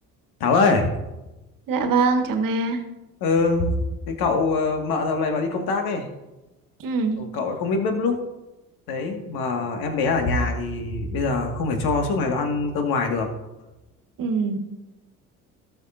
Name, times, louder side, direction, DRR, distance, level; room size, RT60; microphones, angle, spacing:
voice 1, 0.4-0.9 3.2-3.7 4.1-6.1 7.2-8.2 8.9-13.3, left 4 dB, 55° left, 4 dB, 1.8 m, -23 dB
voice 2, 1.7-2.8 6.8-7.2 14.2-14.6, right 4 dB, 45° right, 5 dB, 1.6 m, -23 dB
18.0 x 6.7 x 2.6 m, 1.0 s
figure-of-eight pair, 55°, 45 cm